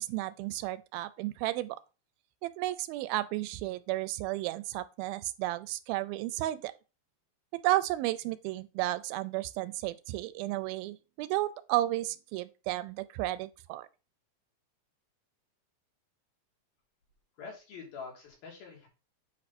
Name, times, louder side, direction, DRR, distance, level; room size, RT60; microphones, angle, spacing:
voice 1, 0.0-1.8 2.4-6.7 7.6-13.9, right 16 dB, 85° right, 2.4 m, -33 dB
voice 2, 17.4-18.9, left 5 dB, 75° left, 4.6 m, -45 dB
8.3 x 5.4 x 4.2 m
omnidirectional pair, 4.3 m